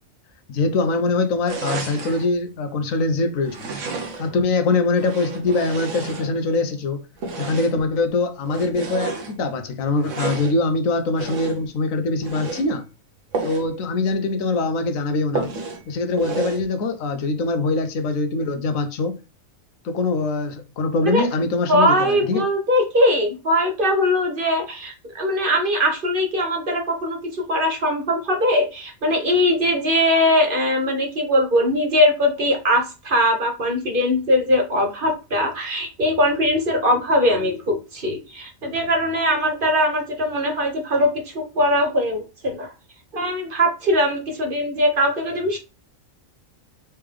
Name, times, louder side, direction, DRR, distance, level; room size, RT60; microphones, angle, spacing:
voice 1, 0.5-3.7 4.2-7.0 7.4-12.9 13.4-15.5 15.9-19.2 19.8-22.5, left 3 dB, 85° left, 1.2 m, -23 dB
sound 1, 1.5-2.3 3.4-4.4 4.9-6.6 7.2-7.9 8.5-9.3 10.0-10.6 11.2-11.7 12.2-12.7 13.3-13.7 14.1-14.2 14.5-14.6 15.3-15.8 16.2-16.7, right 4 dB, 70° right, 1.3 m, -31 dB
voice 2, 21.7-42.7 43.1-45.6, left 1 dB, 45° right, 1.2 m, -21 dB
4.4 x 3.4 x 3.3 m
omnidirectional pair, 1.4 m